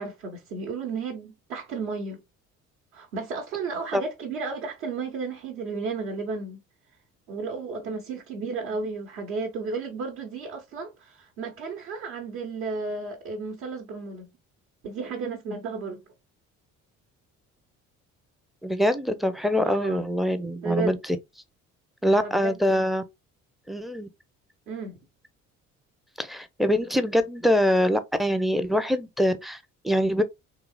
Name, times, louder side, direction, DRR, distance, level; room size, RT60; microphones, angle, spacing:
voice 1, 0.0-2.2 2.9-6.6 7.3-14.3 14.8-16.0 19.6-20.1 20.6-21.0 22.1-22.9 24.7-25.0, right 4 dB, 65° right, 1.0 m, -33 dB
voice 2, 18.6-21.0 22.0-23.0 23.7-24.1 26.2-29.6 29.8-30.2, equal, ahead, 0.4 m, -24 dB
3.8 x 2.8 x 2.2 m
figure-of-eight pair, 50°, 42 cm